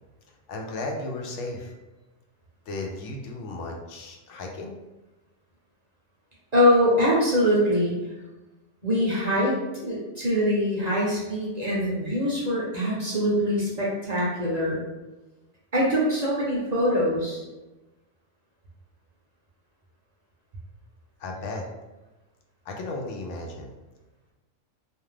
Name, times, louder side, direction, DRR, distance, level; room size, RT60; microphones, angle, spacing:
voice 1, 0.5-1.7 2.7-4.7 21.2-21.7 22.7-23.7, left 2 dB, 75° left, 1 dB, 0.9 m, -34 dB
voice 2, 6.5-7.9 8.8-14.8 15.7-17.4, equal, 40° right, -6 dB, 0.7 m, -23 dB
2.5 x 2.3 x 3.2 m, 1.1 s
omnidirectional pair, 1.2 m